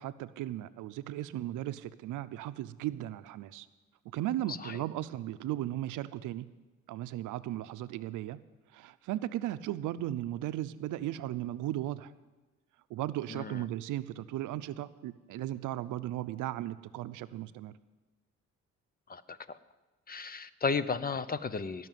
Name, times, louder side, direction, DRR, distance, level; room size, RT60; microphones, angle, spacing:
voice 1, 0.0-3.7 4.1-6.5 6.9-8.4 8.7-12.1 12.9-17.7, right 13 dB, 90° right, 14 dB, 0.6 m, -36 dB
voice 2, 13.3-13.6 19.1-19.2 19.5-19.6 20.1-21.9, left 5 dB, 30° left, 15 dB, 0.7 m, -34 dB
17.5 x 6.0 x 9.3 m, 1.2 s
cardioid pair, 90°, 30 cm